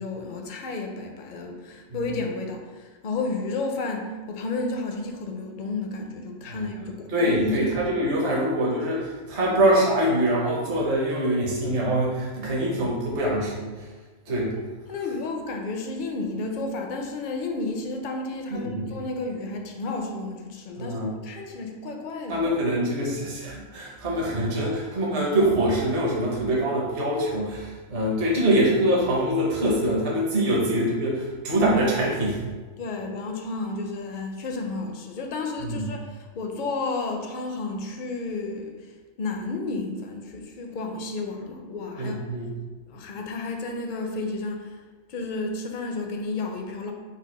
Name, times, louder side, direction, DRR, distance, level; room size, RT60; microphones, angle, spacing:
voice 1, 0.0-7.7 14.3-14.4 14.9-22.4 32.8-38.7 39.2-42.2 42.9-44.7 45.1-46.9, left 3 dB, 60° left, 3 dB, 0.5 m, -32 dB
voice 2, 7.1-13.9 14.3-14.5 18.5-18.8 20.8-21.1 22.3-32.4 35.6-35.9 42.0-42.5, right 1 dB, 50° right, -4 dB, 1.0 m, -24 dB
4.2 x 2.3 x 4.6 m, 1.3 s
omnidirectional pair, 1.4 m